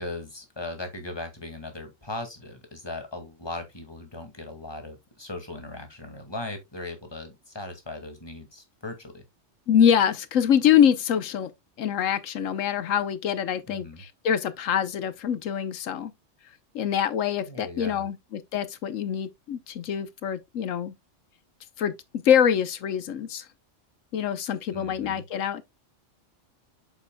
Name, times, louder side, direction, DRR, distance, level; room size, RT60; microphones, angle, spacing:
voice 1, 0.0-9.2 13.7-14.0 17.4-18.1 24.7-25.2, left 2 dB, 20° left, 2.0 m, -38 dB
voice 2, 9.7-11.5 11.8-16.1 16.7-20.9 21.8-23.5 24.1-25.6, left 9 dB, 90° left, 1.2 m, -24 dB
8.2 x 7.1 x 2.2 m
omnidirectional pair, 1.3 m